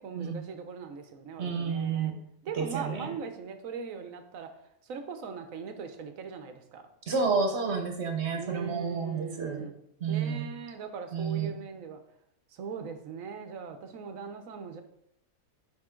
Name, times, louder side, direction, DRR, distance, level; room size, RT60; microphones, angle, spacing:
voice 1, 0.0-2.1 2.4-4.5 4.8-6.8 8.4-9.7 10.1-12.0 12.5-14.8, right 6 dB, 65° right, 7 dB, 1.2 m, -40 dB
voice 2, 1.4-2.2 2.5-3.1 7.1-9.7 10.0-10.4 11.1-11.5, right 5 dB, 50° right, 4 dB, 1.3 m, -30 dB
10.5 x 3.6 x 3.7 m, 0.75 s
omnidirectional pair, 1.6 m